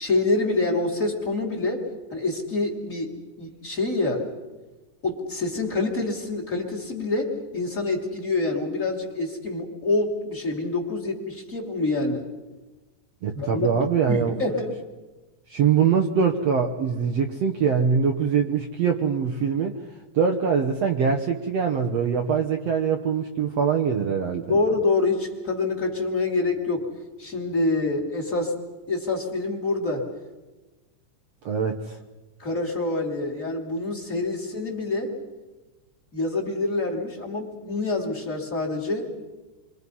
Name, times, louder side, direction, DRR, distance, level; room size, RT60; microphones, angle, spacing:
voice 1, 0.0-1.8 2.1-4.2 5.0-12.3 13.3-13.7 14.1-14.7 24.5-26.8 27.2-28.5 28.9-30.1 32.4-35.1 36.1-39.1, left 3 dB, 25° left, -1 dB, 2.9 m, -26 dB
voice 2, 13.2-14.3 15.5-19.8 20.1-24.5 31.5-32.0, right 6 dB, 60° right, 4 dB, 1.9 m, -23 dB
29.5 x 24.0 x 5.6 m, 1.2 s
omnidirectional pair, 3.9 m